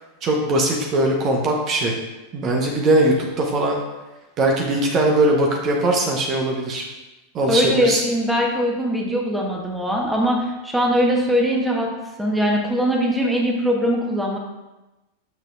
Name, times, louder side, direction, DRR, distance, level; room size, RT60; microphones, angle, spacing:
voice 1, 0.2-1.9 2.3-3.8 4.4-6.8 7.3-8.0, right 1 dB, 30° right, 0 dB, 1.0 m, -20 dB
voice 2, 7.5-11.9 12.2-14.4, equal, 5° right, -2 dB, 1.3 m, -21 dB
7.9 x 6.9 x 2.5 m, 1.1 s
figure-of-eight pair, 90°, 0 cm